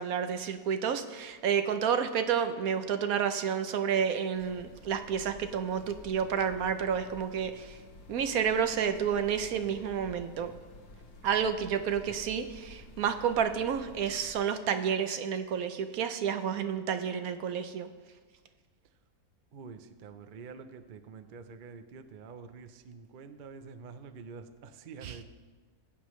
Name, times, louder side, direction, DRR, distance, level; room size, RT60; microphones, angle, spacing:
voice 1, 0.0-7.8 8.1-10.5 11.2-17.9 25.0-25.2, right 7 dB, 70° right, 9 dB, 1.1 m, -30 dB
sound 1, 4.3-14.3, left 2 dB, 55° left, 1.4 m, -51 dB
voice 2, 19.5-25.2, right 5 dB, 55° right, 9 dB, 0.5 m, -47 dB
20.0 x 8.3 x 3.1 m, 1.4 s
omnidirectional pair, 1.6 m